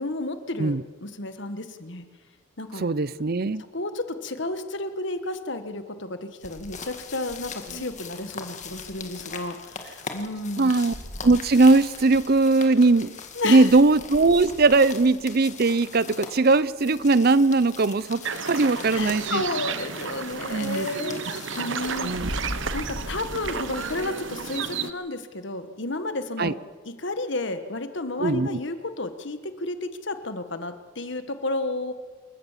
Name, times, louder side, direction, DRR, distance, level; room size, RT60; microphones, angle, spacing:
voice 1, 0.0-2.1 2.6-2.8 3.7-10.7 13.3-13.7 18.9-21.2 21.6-22.1 22.7-26.6 26.8-31.9, left 2 dB, 55° left, 10 dB, 1.5 m, -32 dB
voice 2, 2.8-3.6 7.7-7.8 10.6-10.9 11.2-13.1 13.4-18.2 18.5-19.4 20.5-21.3 22.0-22.3 26.4-26.5 28.2-28.6, right 3 dB, 45° right, 18 dB, 0.6 m, -20 dB
sound 1, 6.4-24.6, left 3 dB, 35° left, 2.0 m, -40 dB
sound 2, 18.2-24.9, right 6 dB, 60° right, 1.1 m, -32 dB
28.0 x 15.0 x 7.4 m, 1.4 s
head